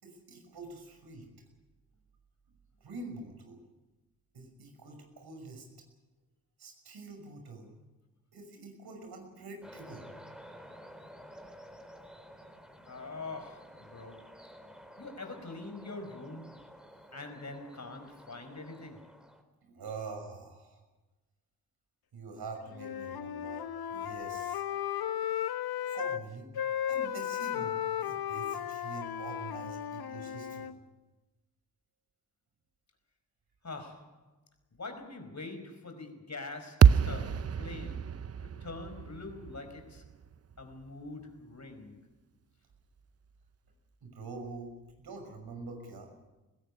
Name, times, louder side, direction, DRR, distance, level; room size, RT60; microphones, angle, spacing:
voice 1, 0.0-1.3 2.8-3.6 4.3-5.7 6.6-7.7 8.3-10.1 13.9-14.0 19.6-20.8 22.1-24.6 25.9-26.5 26.9-30.7 44.0-44.7 45.0-46.1, right 3 dB, 70° right, 6.1 m, -45 dB
sound 1, 9.6-19.4, equal, ahead, 4.2 m, -52 dB
voice 2, 12.9-14.4 15.0-16.7 17.1-19.2 33.6-34.3 34.7-40.1 40.6-42.0, left 3 dB, 45° left, 4.9 m, -44 dB
Wind instrument woodwind instrument, 22.7-26.2 26.5-30.8, left 10 dB, 70° left, 1.2 m, -35 dB
sound 2, 36.8-41.1, right 7 dB, 40° right, 0.7 m, -27 dB
20.5 x 16.5 x 9.8 m
supercardioid pair, 45°, 39 cm